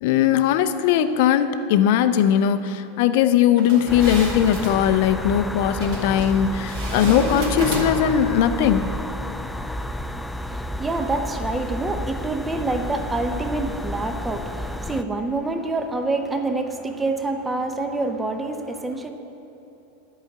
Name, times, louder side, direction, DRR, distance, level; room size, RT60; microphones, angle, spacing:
voice 1, 0.0-8.9, left 9 dB, 60° left, 11 dB, 0.5 m, -19 dB
sound 1, 3.6-4.8 5.8-6.3 6.7-8.2, right 1 dB, 60° right, 2.6 m, -30 dB
sound 2, 3.9-15.0, left 1 dB, 5° left, 0.4 m, -31 dB
voice 2, 10.4-19.1, right 2 dB, 15° right, 6 dB, 0.8 m, -27 dB
10.5 x 4.8 x 7.9 m, 3.0 s
hypercardioid pair, 95°, 0 cm